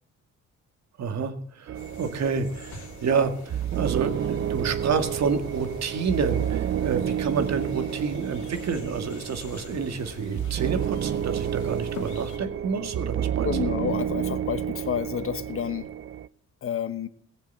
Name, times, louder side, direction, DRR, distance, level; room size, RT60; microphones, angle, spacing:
voice 1, 1.0-13.7, right 5 dB, 60° right, 2.1 m, -29 dB
sound 1, 1.7-12.4, left 3 dB, 75° left, 2.7 m, -44 dB
sound 2, 1.7-16.3, right 10 dB, 45° right, 0.5 m, -30 dB
voice 2, 13.4-15.9 16.6-17.1, left 8 dB, 45° left, 1.2 m, -29 dB
18.0 x 7.3 x 7.8 m
cardioid pair, 90°, 30 cm